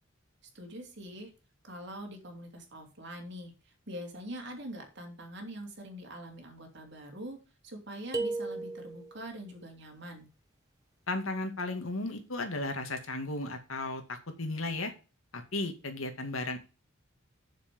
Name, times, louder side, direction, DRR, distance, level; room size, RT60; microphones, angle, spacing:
voice 1, 0.5-1.3 1.6-10.3, equal, 55° right, 3 dB, 3.1 m, -44 dB
sound 1, 8.1-9.3, right 3 dB, 15° right, 1.2 m, -35 dB
voice 2, 11.1-14.9 15.3-16.6, left 2 dB, 90° left, 6 dB, 2.2 m, -35 dB
7.5 x 7.0 x 6.8 m, 0.33 s
head